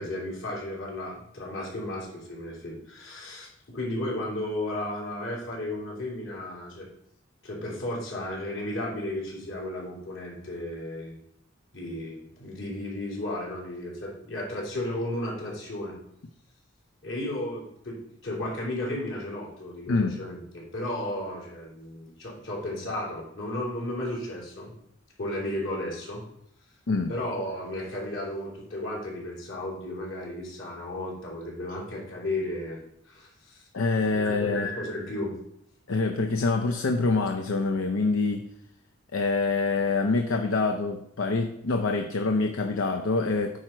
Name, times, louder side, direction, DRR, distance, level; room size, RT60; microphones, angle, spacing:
voice 1, 0.0-6.9 7.4-11.1 11.7-15.9 17.0-24.7 25.2-26.2 27.1-32.8 33.0-33.6 34.1-35.3, left 1 dB, 70° left, -3 dB, 3.3 m, -34 dB
voice 2, 19.9-20.2 26.9-27.1 33.7-34.7 35.9-38.5 39.1-43.6, left 3 dB, 90° left, 4 dB, 0.6 m, -26 dB
8.9 x 5.0 x 4.4 m, 0.77 s
head